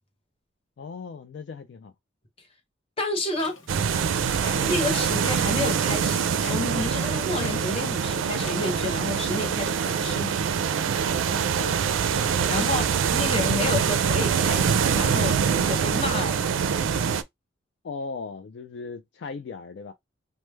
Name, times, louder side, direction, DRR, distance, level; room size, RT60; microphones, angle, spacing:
voice 1, 0.8-1.9 11.6-11.8 17.8-19.9, left 4 dB, 60° left, 0.3 m, -37 dB
voice 2, 3.0-3.6 4.5-10.4 12.5-16.4, left 3 dB, 30° left, 0.9 m, -30 dB
Clock, 3.3-8.9, left 3 dB, 80° left, 0.8 m, -46 dB
sound 1, 3.7-17.2, right 7 dB, 80° right, 0.4 m, -24 dB
3.1 x 2.0 x 3.3 m
head